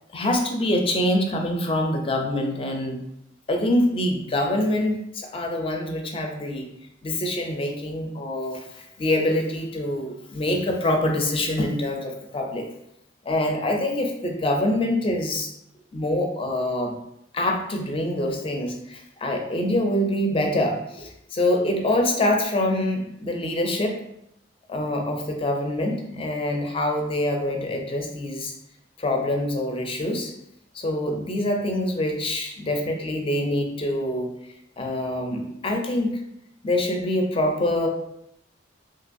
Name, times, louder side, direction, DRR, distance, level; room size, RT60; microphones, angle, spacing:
voice 1, 0.1-3.0 3.5-6.7 7.0-12.7 13.3-15.5 15.9-16.9 17.3-24.0 24.7-28.5 29.0-30.3 30.7-34.3 34.8-36.1 36.6-37.9, left 1 dB, 30° left, 2 dB, 0.4 m, -25 dB
3.0 x 2.8 x 2.5 m, 0.80 s
head